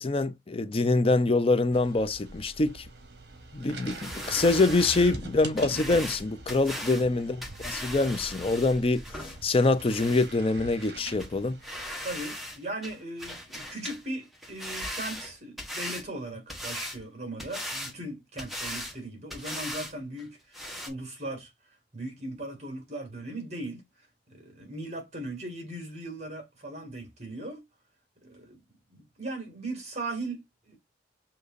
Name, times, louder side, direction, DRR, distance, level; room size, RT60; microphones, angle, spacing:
voice 1, 0.0-2.9 3.5-7.4 7.6-11.6, left 3 dB, 35° left, 0.5 m, -25 dB
sound 1, 1.7-12.3, right 2 dB, 70° right, 1.1 m, -43 dB
sound 2, 3.9-10.3 10.8-10.9 11.2-11.3 11.6-12.6 12.8-14.0 14.3-16.1 16.5-17.0 17.4-17.9 18.4-19.0 19.3-19.9 20.2-20.3 20.5-20.9, equal, ahead, 1.3 m, -38 dB
voice 2, 12.0-21.5 21.9-23.8 24.3-27.6 28.2-28.6 28.9-30.8, right 1 dB, 40° right, 2.1 m, -38 dB
6.4 x 2.9 x 2.5 m
head